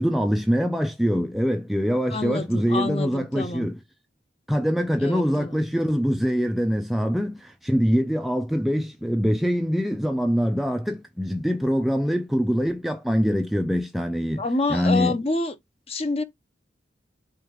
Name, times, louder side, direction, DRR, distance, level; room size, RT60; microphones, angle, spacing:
voice 1, 0.0-3.8 4.5-14.4 14.7-15.2, equal, ahead, 0.3 m, -24 dB
voice 2, 2.1-3.7 5.0-5.7 14.4-15.5 15.9-16.2, left 2 dB, 35° left, 0.7 m, -27 dB
4.6 x 2.4 x 4.6 m
head